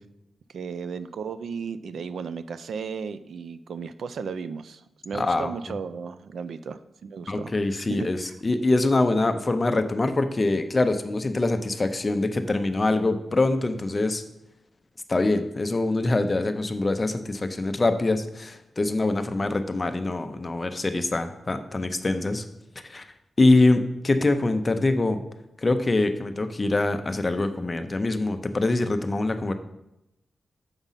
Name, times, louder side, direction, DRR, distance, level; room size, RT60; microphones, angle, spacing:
voice 1, 0.5-8.3, right 5 dB, 75° right, 12 dB, 0.4 m, -35 dB
voice 2, 5.1-5.5 7.3-14.2 15.1-22.4 22.9-23.0 23.4-25.2 25.6-29.5, left 2 dB, 25° left, 8 dB, 0.6 m, -24 dB
7.2 x 5.2 x 5.6 m, 0.88 s
wide cardioid pair, 165°, 0 cm